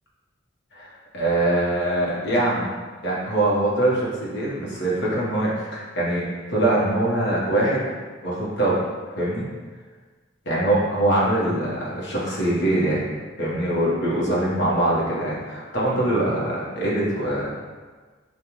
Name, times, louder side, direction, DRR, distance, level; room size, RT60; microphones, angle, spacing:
voice 1, 0.7-2.7 3.0-7.9 8.2-8.8 9.2-9.5 10.4-13.0 13.4-17.5, right 1 dB, 60° left, -6 dB, 1.1 m, -23 dB
5.3 x 2.4 x 3.0 m, 1.4 s
head